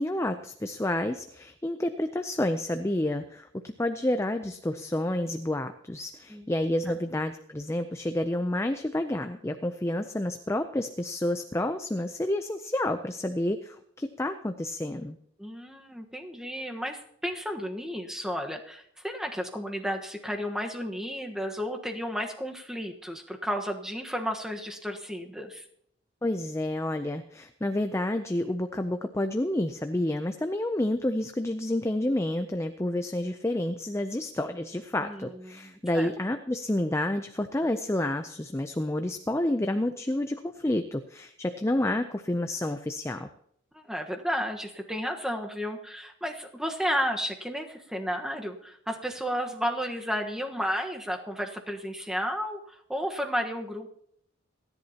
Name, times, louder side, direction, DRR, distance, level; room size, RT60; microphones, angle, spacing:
voice 1, 0.0-15.2 26.2-43.3, left 1 dB, 15° left, 8 dB, 0.5 m, -29 dB
voice 2, 15.4-25.6 35.0-36.1 43.7-53.9, equal, 5° right, 3 dB, 1.3 m, -33 dB
29.0 x 10.5 x 2.9 m, 0.70 s
head